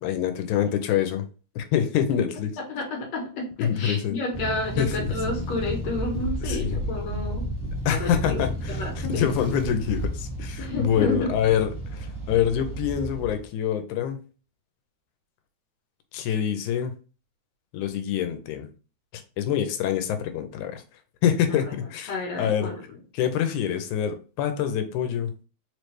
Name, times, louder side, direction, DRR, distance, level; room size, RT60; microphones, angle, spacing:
voice 1, 0.0-1.3 1.6-2.6 3.6-4.2 4.8-5.1 6.5-6.7 7.9-14.2 16.1-16.9 17.7-18.7 19.1-20.8 21.2-22.7 23.1-25.3, left 9 dB, 85° left, 2.1 m, -26 dB
voice 2, 2.6-7.5 7.9-9.3 10.6-11.3 21.5-21.6 22.1-23.0, left 2 dB, 70° left, 2.0 m, -31 dB
sound 1, 4.3-13.5, right 1 dB, 15° right, 1.5 m, -32 dB
4.7 x 3.2 x 3.1 m
omnidirectional pair, 3.5 m